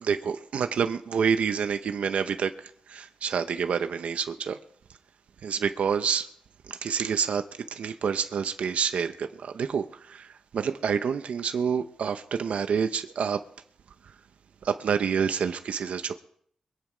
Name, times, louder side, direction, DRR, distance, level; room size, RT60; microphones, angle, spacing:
voice 1, 0.0-4.6 5.4-6.3 6.6-13.4 14.0-14.1 14.6-16.2, right 6 dB, 80° right, 0.7 m, -28 dB
23.0 x 9.4 x 5.0 m
cardioid pair, 90°, 2 cm